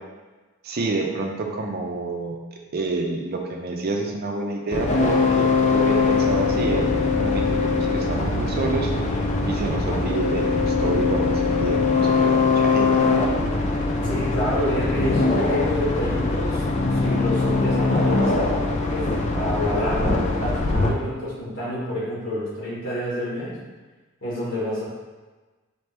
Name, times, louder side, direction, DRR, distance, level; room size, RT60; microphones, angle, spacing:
voice 1, 0.6-2.4 2.7-12.9, right 3 dB, 45° right, 1 dB, 0.5 m, -28 dB
sound 1, 4.7-20.9, left 3 dB, 35° left, 0.4 m, -22 dB
voice 2, 14.0-23.6 24.2-24.8, equal, 60° left, -8 dB, 1.3 m, -28 dB
4.2 x 2.9 x 3.3 m, 1.3 s
head